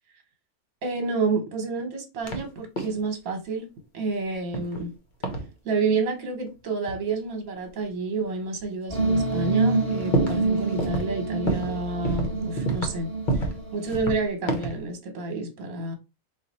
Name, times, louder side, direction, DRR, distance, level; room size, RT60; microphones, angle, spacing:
voice 1, 0.8-3.7 3.9-4.9 5.6-13.1 13.7-15.9, right 3 dB, 75° right, 1.4 m, -29 dB
sound 1, 2.2-2.5 2.8-3.1 4.5-4.9 5.2-5.5 6.8-7.0 7.9-8.0 8.6-8.7 9.2-9.3 9.5-10.5 10.8-11.1 11.5-11.8 12.0-13.0 13.3-13.6 13.9-14.8, right 1 dB, 40° left, 0.8 m, -28 dB
sound 2, 8.9-14.0, right 3 dB, 15° right, 1.4 m, -27 dB
4.1 x 2.5 x 4.0 m
omnidirectional pair, 1.5 m